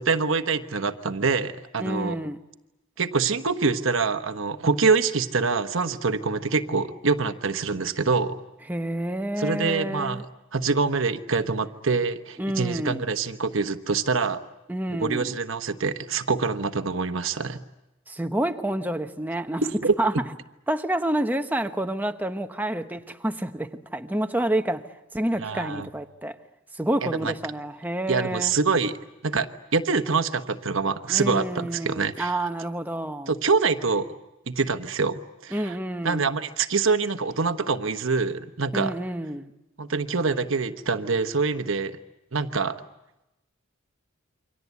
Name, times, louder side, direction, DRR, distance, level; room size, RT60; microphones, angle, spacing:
voice 1, 0.0-2.2 3.0-8.4 9.4-10.2 10.5-14.4 14.9-17.6 19.8-19.9 25.4-25.9 27.0-27.3 28.1-28.9 29.2-32.4 33.3-34.1 34.5-35.8 36.0-38.9 39.8-42.0 42.3-42.8, right 4 dB, 65° right, 1.2 m, -25 dB
voice 2, 1.8-2.4 8.7-10.2 12.4-13.1 14.7-15.3 18.1-19.6 20.0-20.1 20.7-24.8 25.1-26.4 26.8-28.5 31.1-33.3 35.5-36.3 38.7-39.5, right 1 dB, 10° right, 1.0 m, -28 dB
28.5 x 24.5 x 8.3 m
head